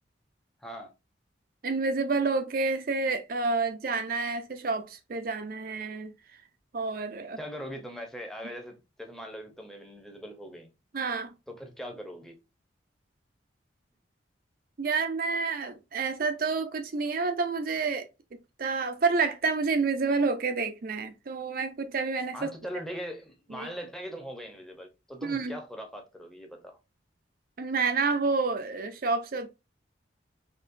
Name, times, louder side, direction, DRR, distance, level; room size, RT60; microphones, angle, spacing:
voice 1, 0.6-0.9 7.4-10.7 11.5-12.4 22.3-26.8, equal, ahead, 0.7 m, -41 dB
voice 2, 1.6-6.1 6.7-7.4 10.9-11.3 14.8-18.1 18.6-22.5 23.5-23.7 25.2-25.6 27.6-29.5, right 4 dB, 50° right, 0.4 m, -29 dB
4.3 x 3.0 x 2.5 m
head